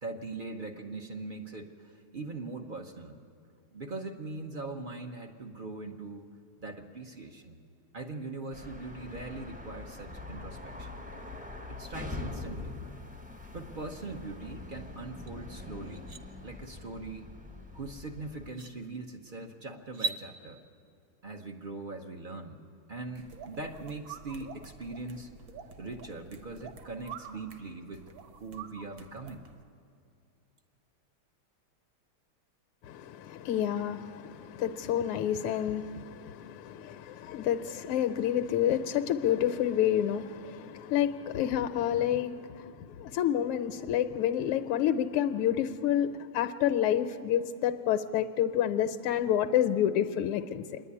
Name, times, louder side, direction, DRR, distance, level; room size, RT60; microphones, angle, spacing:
voice 1, 0.0-3.2 3.7-6.3 6.6-7.6 7.9-11.0 11.7-12.7 13.5-16.1 16.4-17.3 17.7-20.6 21.2-22.6 22.9-25.3 25.8-29.5, right 3 dB, 80° right, 2 dB, 0.4 m, -41 dB
sound 1, 8.5-18.5, left 2 dB, 10° right, 0.3 m, -43 dB
sound 2, 15.3-15.4 15.8-16.2 17.9-18.0 18.5-18.7 19.9-20.2, right 3 dB, 45° right, 1.0 m, -36 dB
sound 3, 23.2-29.6, right 6 dB, 60° right, 1.9 m, -48 dB
voice 2, 32.8-50.8, left 10 dB, 85° left, 8 dB, 1.6 m, -29 dB
26.0 x 10.5 x 9.8 m, 2.4 s
omnidirectional pair, 2.4 m